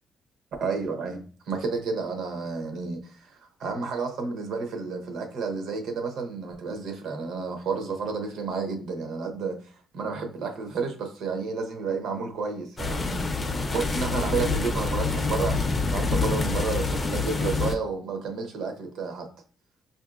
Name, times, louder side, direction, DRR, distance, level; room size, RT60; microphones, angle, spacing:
voice 1, 0.6-13.2 13.7-19.3, right 4 dB, 70° right, 0.8 m, -31 dB
sound 1, 12.8-17.7, left 4 dB, 20° left, 0.4 m, -26 dB
5.3 x 2.6 x 2.4 m
cardioid pair, 155°, 0 cm